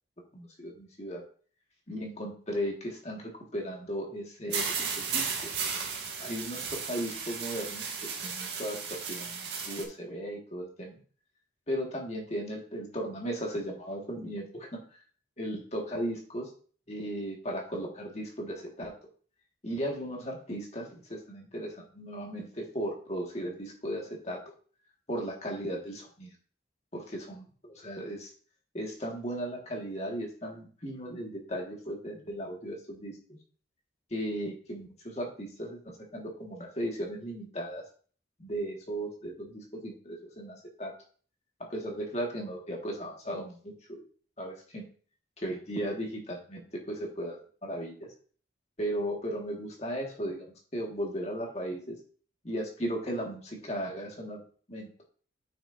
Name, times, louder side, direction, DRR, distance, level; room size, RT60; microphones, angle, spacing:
voice 1, 0.3-1.2 1.9-5.6 6.2-7.8 8.2-11.0 11.7-14.8 15.4-16.5 16.9-18.9 19.6-24.4 25.1-26.3 26.9-28.3 28.7-33.1 34.1-37.8 38.4-40.9 41.7-44.0 44.4-44.8 45.4-48.1 48.8-50.5 50.7-52.0 52.4-54.4 54.7-54.9, equal, 35° left, 0 dB, 1.7 m, -36 dB
sound 1, 4.5-9.8, right 6 dB, 65° right, 1.7 m, -34 dB
8.8 x 6.1 x 2.7 m, 0.43 s
head